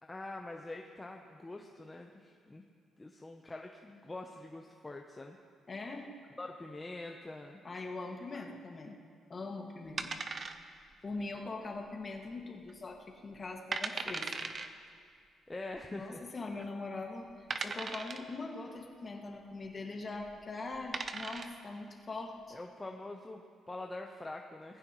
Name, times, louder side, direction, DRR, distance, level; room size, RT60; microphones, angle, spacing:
voice 1, 0.0-2.6 3.0-5.4 6.4-7.6 10.4-10.5 15.5-16.2 22.5-24.8, left 2 dB, 15° left, 2 dB, 0.9 m, -44 dB
voice 2, 5.7-6.1 7.6-9.0 9.3-10.3 11.0-14.3 15.9-17.3 17.6-22.6, left 3 dB, 35° left, 1 dB, 2.0 m, -42 dB
sound 1, 10.0-10.9 11.2-11.3 11.9-12.3 12.7-12.8 13.4-13.5 13.7-14.7 15.8-15.9 16.5-16.6 17.5-18.3 20.2-20.3 20.7-21.6, right 4 dB, 40° right, 0.8 m, -38 dB
19.0 x 15.5 x 3.2 m, 2.2 s
cardioid pair, 90°, 0 cm